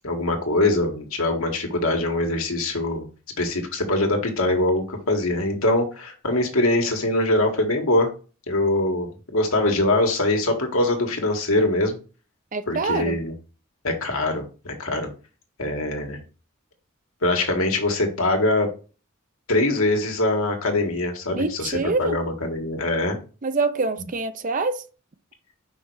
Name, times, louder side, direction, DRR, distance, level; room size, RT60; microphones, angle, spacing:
voice 1, 0.0-3.0 3.4-8.1 8.5-12.0 12.7-13.3 13.8-15.1 15.6-16.2 17.2-18.7 19.5-23.2, left 2 dB, 75° left, 1.6 m, -23 dB
voice 2, 12.5-13.2 21.3-22.2 23.4-24.8, right 3 dB, 40° right, 0.6 m, -25 dB
5.7 x 4.1 x 4.7 m
head